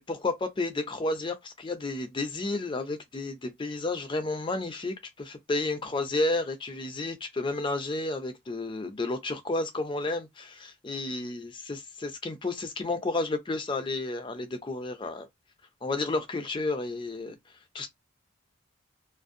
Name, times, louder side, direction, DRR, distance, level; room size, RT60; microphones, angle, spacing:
voice 1, 0.0-15.3 15.8-17.4 17.7-17.9, left 2 dB, 25° left, 0.4 m, -31 dB
2.4 x 2.1 x 2.5 m
head